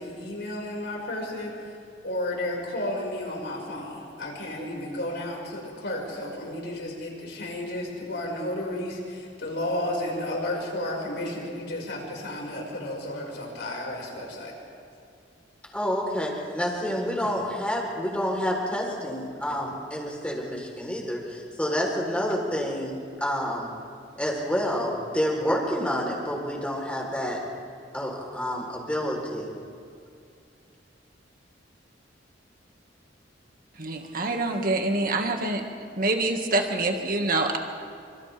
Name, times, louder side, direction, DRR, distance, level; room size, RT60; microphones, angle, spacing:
voice 1, 0.0-1.7 2.0-14.5, left 1 dB, 70° left, -2 dB, 5.7 m, -32 dB
voice 2, 15.7-23.7 24.2-27.4 27.9-29.5, equal, 5° left, -1 dB, 4.0 m, -28 dB
voice 3, 33.7-35.6 35.9-37.6, right 2 dB, 50° right, 3 dB, 2.0 m, -26 dB
28.5 x 26.0 x 3.6 m, 2.3 s
head